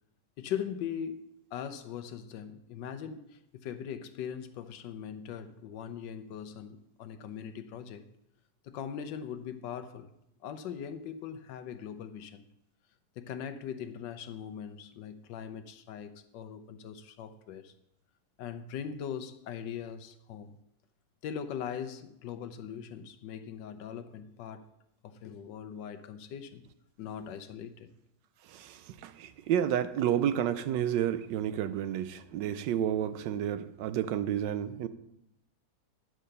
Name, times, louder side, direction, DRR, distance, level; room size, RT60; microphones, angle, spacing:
voice 1, 0.4-8.1 8.6-10.1 10.4-12.5 13.2-17.7 18.4-20.6 21.2-24.7 25.0-26.6 27.0-27.9, left 8 dB, 75° left, 1.3 m, -40 dB
voice 2, 28.5-34.9, right 10 dB, 75° right, 1.2 m, -30 dB
10.0 x 4.8 x 6.6 m
omnidirectional pair, 2.0 m